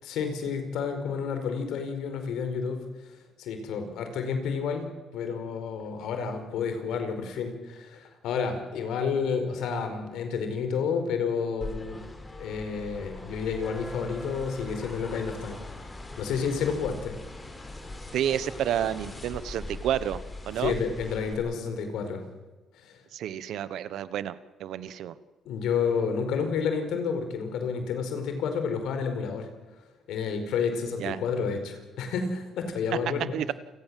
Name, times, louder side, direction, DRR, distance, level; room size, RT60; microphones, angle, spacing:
voice 1, 0.0-2.9 3.4-12.1 12.4-15.6 16.2-17.2 20.6-22.3 22.8-23.0 25.4-29.5 30.1-33.4, left 6 dB, 85° left, 7 dB, 4.8 m, -30 dB
sound 1, 11.6-21.3, left 2 dB, 25° left, 5.2 m, -41 dB
voice 2, 18.1-20.7 23.1-25.1 31.0-31.2 33.3-33.5, right 10 dB, 80° right, 15 dB, 1.2 m, -30 dB
28.5 x 18.5 x 7.7 m, 1.2 s
cardioid pair, 90°, 0 cm